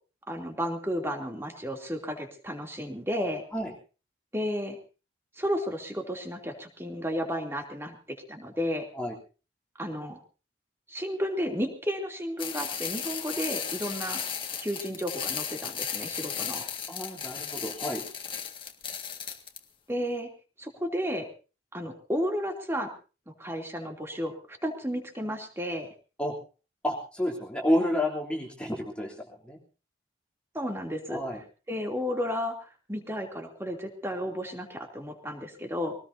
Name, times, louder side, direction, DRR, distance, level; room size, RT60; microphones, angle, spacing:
voice 1, 0.3-3.4 4.3-4.8 5.4-8.0 8.3-8.9 9.8-10.2 10.9-14.2 14.6-16.6 19.9-20.3 20.6-21.3 21.7-22.9 23.4-25.9 30.5-31.2 31.7-36.0, equal, 15° right, 3 dB, 2.9 m, -32 dB
sound 1, 12.4-19.6, left 7 dB, 25° left, 1.8 m, -35 dB
voice 2, 16.9-18.0 26.2-26.3 26.8-29.6 31.1-31.4, left 1 dB, 5° left, -3 dB, 3.2 m, -30 dB
23.5 x 19.0 x 2.7 m, 0.35 s
head